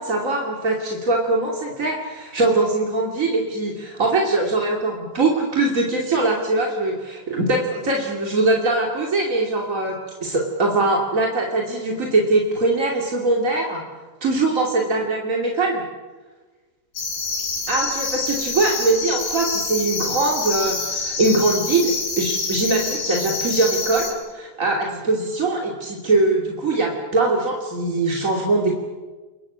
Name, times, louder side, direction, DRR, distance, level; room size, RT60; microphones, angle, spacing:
voice 1, 0.0-13.8 14.2-15.8 17.7-24.1 24.3-28.7, right 2 dB, 25° right, 0 dB, 2.0 m, -22 dB
sound 1, 17.0-24.1, left 4 dB, 50° left, 7.4 m, -27 dB
30.0 x 22.0 x 8.7 m, 1.3 s
omnidirectional pair, 5.0 m